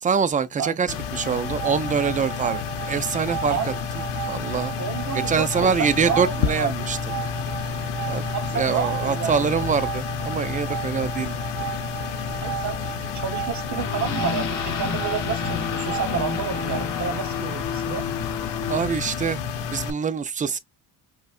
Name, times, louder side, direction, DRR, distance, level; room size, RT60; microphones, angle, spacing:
voice 1, 0.0-2.6 2.9-3.6 4.3-4.7 5.3-7.0 8.1-8.2 8.5-11.3 18.7-19.4 19.7-20.6, right 6 dB, 20° right, 0.3 m, -24 dB
voice 2, 0.6-1.0 3.5-3.8 4.8-6.9 8.3-9.5 12.4-18.0, right 7 dB, 45° right, 0.9 m, -30 dB
sound 1, 0.9-19.9, left 7 dB, 75° left, 0.8 m, -30 dB
sound 2, 1.1-16.9, right 12 dB, 70° right, 0.6 m, -36 dB
sound 3, 13.8-18.8, left 7 dB, 45° left, 0.9 m, -30 dB
5.2 x 2.2 x 2.4 m
cardioid pair, 90°, 42 cm